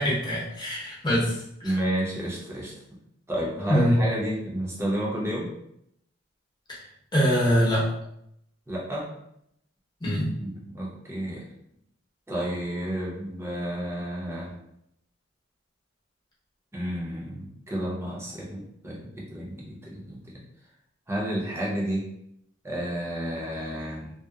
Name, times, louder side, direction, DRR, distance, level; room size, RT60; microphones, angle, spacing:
voice 1, 0.0-1.7 3.7-4.0 6.7-6.8 7.1-7.8 10.0-10.3, equal, 25° left, -6 dB, 0.8 m, -23 dB
voice 2, 1.6-2.7 3.3-5.5 8.7-9.1 10.4-11.4 12.3-14.5 16.7-20.4 21.1-22.0 22.6-24.1, right 1 dB, 15° right, -5 dB, 0.6 m, -31 dB
2.7 x 2.1 x 2.3 m, 0.77 s
head